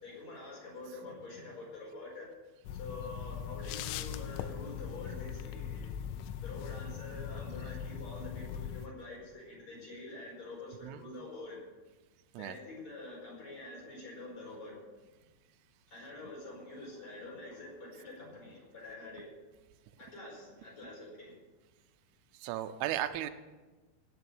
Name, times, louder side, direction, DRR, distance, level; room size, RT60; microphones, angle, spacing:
voice 1, 0.0-2.3 2.7-5.9 6.4-11.6 12.4-14.8 15.9-19.2 20.0-21.4, left 2 dB, 35° left, -4 dB, 5.8 m, -46 dB
sound 1, 2.7-8.9, left 9 dB, 80° left, 3.0 m, -40 dB
voice 2, 22.3-23.3, right 12 dB, 85° right, 10 dB, 3.3 m, -35 dB
17.5 x 6.7 x 7.9 m, 1.2 s
omnidirectional pair, 5.6 m